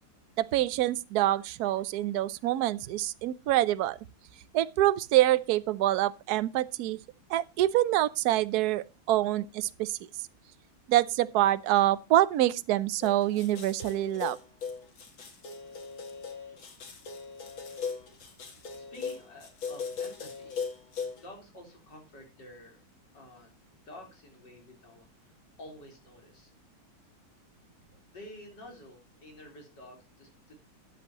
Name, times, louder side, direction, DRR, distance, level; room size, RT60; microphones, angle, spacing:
voice 1, 0.4-4.0 4.5-7.0 7.3-10.0 10.9-14.4, right 14 dB, 70° right, 1.0 m, -26 dB
sound 1, 13.0-21.2, left 5 dB, 70° left, 2.8 m, -39 dB
voice 2, 18.7-20.6 21.1-22.8 23.1-23.5 23.9-26.5 27.9-30.5, left 1 dB, 55° left, 4.6 m, -50 dB
12.5 x 10.5 x 2.9 m
omnidirectional pair, 2.3 m